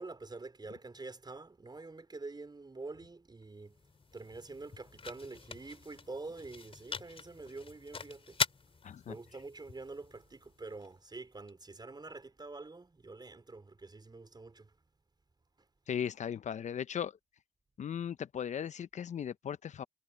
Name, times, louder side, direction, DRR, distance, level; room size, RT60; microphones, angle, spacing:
voice 1, 0.0-3.8 4.1-8.4 9.1-14.7 15.6-15.7, right 3 dB, 30° right, 4.6 m, -46 dB
sound 1, 3.4-11.5, left 4 dB, 40° left, 3.7 m, -42 dB
voice 2, 8.8-9.1 15.9-17.2 17.8-19.8, left 8 dB, 60° left, 0.9 m, -37 dB
hypercardioid pair, 40°, 14 cm